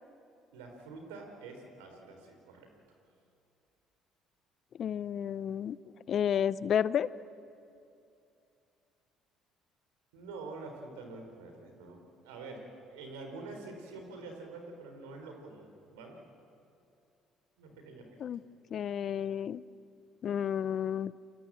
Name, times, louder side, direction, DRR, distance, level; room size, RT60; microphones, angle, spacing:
voice 1, 0.5-2.7 10.1-12.6 12.9-16.2 17.6-18.1, right 3 dB, 85° right, 3 dB, 4.1 m, -46 dB
voice 2, 4.8-5.8 6.1-7.1 18.2-18.4 18.7-19.6 20.2-21.1, left 9 dB, 55° left, 18 dB, 0.6 m, -31 dB
28.5 x 22.0 x 7.6 m, 2.6 s
hypercardioid pair, 60°, 0 cm